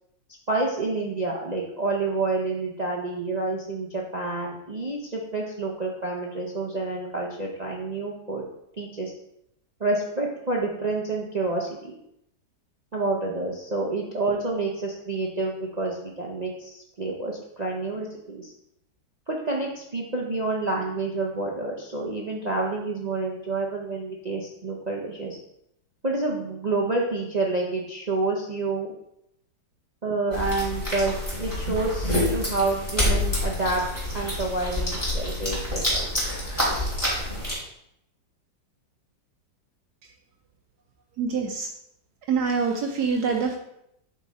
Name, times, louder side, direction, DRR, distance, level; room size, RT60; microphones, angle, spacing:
voice 1, 0.5-8.5 8.8-9.1 9.8-11.9 12.9-18.5 19.3-25.4 26.0-28.9 30.0-33.8 34.1-36.1, right 3 dB, 50° right, -1 dB, 0.5 m, -28 dB
sound 1, 30.3-37.5, left 1 dB, 10° left, 2.8 m, -27 dB
voice 2, 41.2-41.7 42.3-43.6, right 5 dB, 65° right, 2 dB, 1.2 m, -25 dB
8.0 x 3.7 x 4.1 m, 0.78 s
omnidirectional pair, 2.0 m